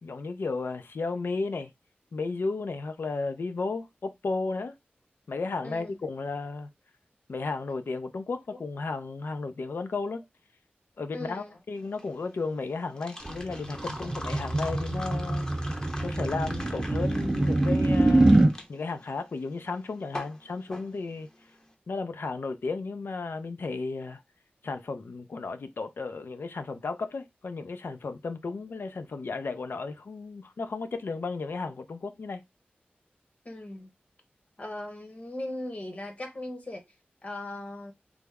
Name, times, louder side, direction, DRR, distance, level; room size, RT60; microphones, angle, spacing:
voice 1, 0.0-1.7 2.1-4.7 5.3-6.7 7.3-10.2 11.0-15.5 16.0-21.3 21.9-24.2 24.6-32.4, left 3 dB, 80° left, 0.4 m, -34 dB
voice 2, 5.6-6.0 11.1-11.6 33.4-33.9 34.6-36.8 37.2-37.9, left 1 dB, 40° left, 1.0 m, -38 dB
sound 1, 11.8-21.6, left 1 dB, 20° left, 0.7 m, -43 dB
sound 2, 13.2-18.5, right 2 dB, 25° right, 0.4 m, -24 dB
3.4 x 2.0 x 3.4 m
wide cardioid pair, 90°, 4 cm